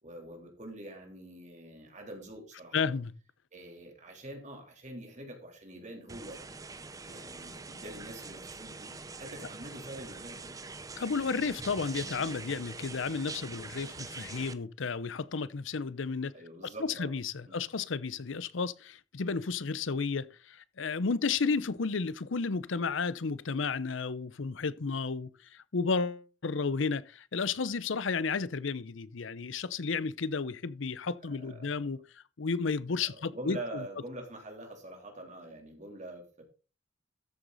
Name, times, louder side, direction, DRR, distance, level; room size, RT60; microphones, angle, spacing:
voice 1, 0.0-3.0 3.5-6.4 7.0-10.6 16.3-17.1 17.4-17.6 31.3-31.7 33.1-36.4, right 1 dB, 35° right, 3.3 m, -45 dB
voice 2, 2.7-3.1 11.0-16.3 16.8-32.0 32.4-33.8, left 4 dB, 75° left, 0.7 m, -32 dB
sound 1, 6.1-14.5, right 4 dB, 15° right, 0.7 m, -44 dB
13.5 x 8.0 x 4.0 m
head